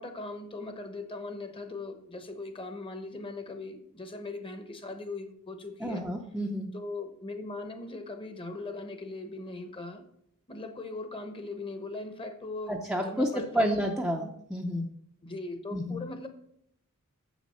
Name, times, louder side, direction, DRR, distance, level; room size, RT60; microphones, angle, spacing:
voice 1, 0.0-6.0 6.7-10.0 10.5-12.8 13.0-13.8 15.2-16.3, left 2 dB, 25° left, 7 dB, 1.0 m, -39 dB
voice 2, 5.8-6.7 12.7-14.9 15.7-16.0, equal, 5° right, 0 dB, 0.6 m, -30 dB
7.6 x 6.1 x 5.6 m, 0.71 s
head